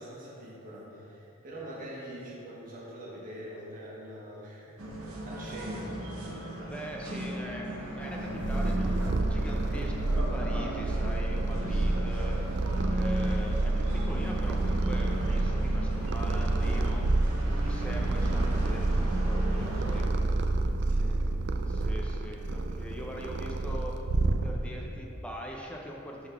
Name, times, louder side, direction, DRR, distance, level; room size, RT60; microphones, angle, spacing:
voice 1, 0.0-6.1 20.8-21.2, equal, 40° right, -6 dB, 1.4 m, -44 dB
sound 1, 4.8-20.0, equal, 85° right, 1.0 m, -36 dB
voice 2, 6.7-12.4 12.9-17.0 17.6-20.1 21.7-24.0 24.4-26.3, equal, 5° left, -2 dB, 0.5 m, -42 dB
Purr, 8.0-24.9, right 2 dB, 55° right, 0.4 m, -29 dB
11.0 x 3.9 x 3.5 m, 3.0 s
head